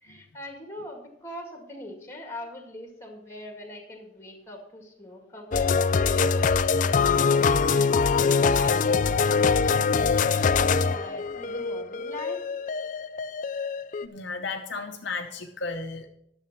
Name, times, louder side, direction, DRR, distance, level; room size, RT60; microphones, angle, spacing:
voice 1, 0.0-12.4, left 1 dB, 15° left, 3 dB, 2.0 m, -42 dB
sound 1, 5.5-14.1, left 5 dB, 40° left, 0.3 m, -23 dB
voice 2, 14.0-16.1, left 4 dB, 55° left, 3 dB, 0.8 m, -34 dB
10.5 x 7.1 x 6.0 m, 0.77 s
head